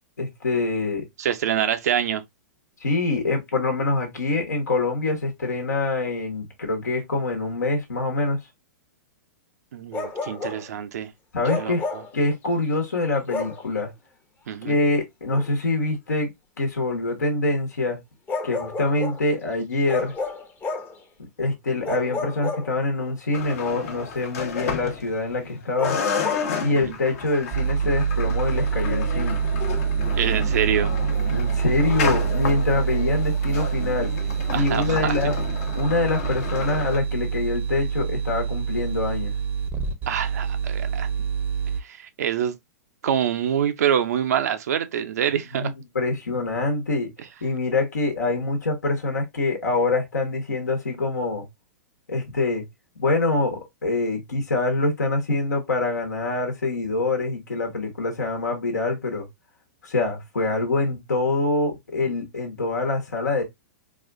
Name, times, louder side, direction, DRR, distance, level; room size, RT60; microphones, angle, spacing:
voice 1, 0.2-1.1 2.8-8.4 11.3-11.8 12.1-13.9 14.6-16.3 16.6-18.0 18.4-20.1 21.2-26.0 26.5-29.4 31.3-34.1 34.5-35.3 35.7-39.3 45.5-47.1 47.4-51.5 52.1-52.6 53.0-59.3 59.8-63.4, left 2 dB, 80° left, 1.2 m, -25 dB
voice 2, 1.2-2.2 9.7-11.1 11.5-11.7 14.5-14.8 26.7-26.9 30.2-30.9 34.5-35.1 40.1-41.1 41.8-42.6 43.0-45.7, right 9 dB, 65° right, 0.5 m, -25 dB
Bark, 9.9-10.7 11.4-12.1 13.3-13.7 15.3-15.5 18.3-19.2 19.9-21.0 21.8-23.1 25.8-26.5, left 3 dB, 20° left, 0.7 m, -31 dB
sound 1, 23.3-25.5 25.8-37.0, left 6 dB, 55° left, 1.0 m, -32 dB
sound 2, 27.5-41.8, right 7 dB, 20° right, 0.6 m, -26 dB
4.1 x 2.4 x 2.4 m
hypercardioid pair, 110°, 9 cm